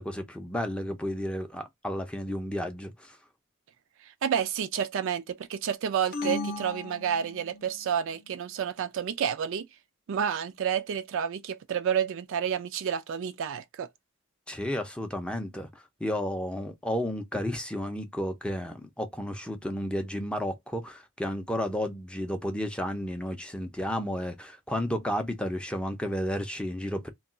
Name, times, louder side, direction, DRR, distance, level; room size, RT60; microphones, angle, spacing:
voice 1, 0.0-3.2 14.5-15.7 16.0-27.1, equal, 5° left, 0.5 m, -32 dB
voice 2, 4.2-9.7 10.1-13.9, right 8 dB, 65° right, 0.3 m, -30 dB
sound 1, 6.1-7.8, left 3 dB, 50° left, 0.6 m, -35 dB
2.3 x 2.3 x 3.7 m
head